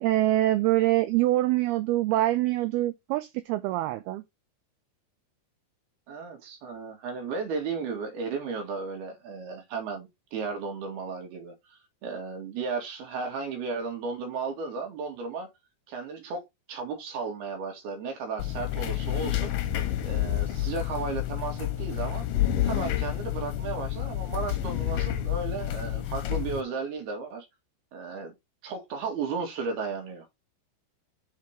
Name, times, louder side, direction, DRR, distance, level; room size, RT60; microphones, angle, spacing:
voice 1, 0.0-4.2, right 15 dB, 90° right, 2.2 m, -25 dB
voice 2, 6.1-15.5 15.9-16.4 16.7-19.5 20.0-22.3 22.6-27.5 27.9-28.3 28.6-30.3, right 4 dB, 65° right, 3.7 m, -34 dB
sound 1, 18.4-26.6, left 12 dB, 70° left, 2.2 m, -29 dB
7.2 x 4.6 x 4.6 m
omnidirectional pair, 5.1 m